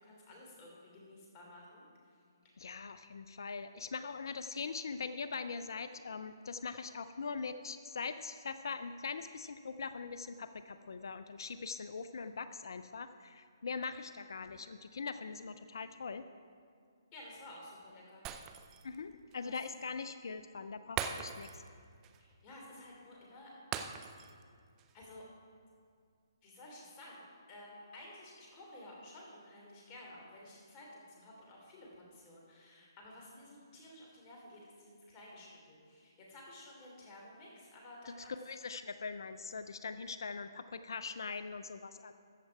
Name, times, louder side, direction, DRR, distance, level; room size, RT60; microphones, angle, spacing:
voice 1, 0.0-1.9 17.1-18.2 19.4-19.6 22.2-23.5 24.9-25.2 26.4-38.3, left 1 dB, 25° left, -2 dB, 3.0 m, -53 dB
voice 2, 2.6-16.3 18.8-21.5 38.2-42.1, left 5 dB, 65° left, 11 dB, 0.5 m, -42 dB
Shatter, 18.2-18.9 19.3-19.4 21.0-21.7 22.0-22.2 23.7-24.4 24.8-24.9, right 8 dB, 20° right, 0.5 m, -40 dB
14.0 x 7.6 x 4.7 m, 2.2 s
hypercardioid pair, 145°, 2 cm